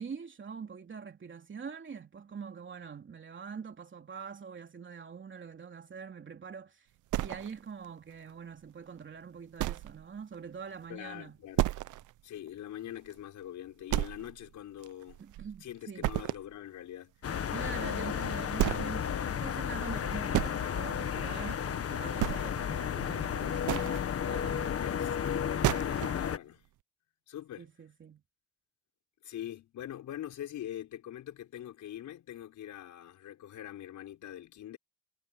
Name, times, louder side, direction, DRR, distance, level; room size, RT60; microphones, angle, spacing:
voice 1, 0.0-6.9 7.2-11.4 15.2-16.1 17.5-23.9 24.2-24.8 27.6-28.2, right 6 dB, 40° right, 3.2 m, -44 dB
sound 1, 7.1-7.9 8.3-8.4 8.9-9.0 9.6-10.0 10.3-10.4 10.8-10.9 11.6-12.1 12.5-12.6 13.1-13.2 13.9-14.5 14.8-15.6 16.0-16.5 17.9-18.0 18.5-19.0 19.9-20.6 21.6-21.8 22.1-22.7 23.4-24.0 25.2-25.3 25.6-26.2, right 16 dB, 80° right, 0.8 m, -32 dB
voice 2, 10.9-11.6 12.2-15.2 15.6-17.1 24.7-25.1 25.6-26.6 27.3-27.7 29.2-34.8, left 11 dB, 75° left, 5.6 m, -43 dB
sound 2, 17.2-26.4, left 8 dB, 50° left, 1.5 m, -33 dB
cardioid pair, 90°, 30 cm